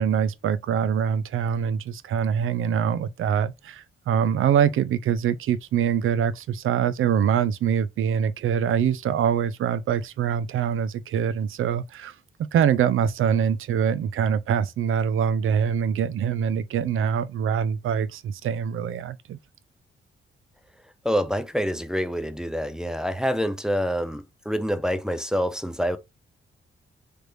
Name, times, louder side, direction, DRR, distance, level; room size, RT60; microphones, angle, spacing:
voice 1, 0.0-12.1 12.5-19.4, right 8 dB, 80° right, 0.4 m, -24 dB
voice 2, 21.0-26.0, equal, 5° right, 0.4 m, -26 dB
3.3 x 3.2 x 2.6 m
cardioid pair, 95°, 21 cm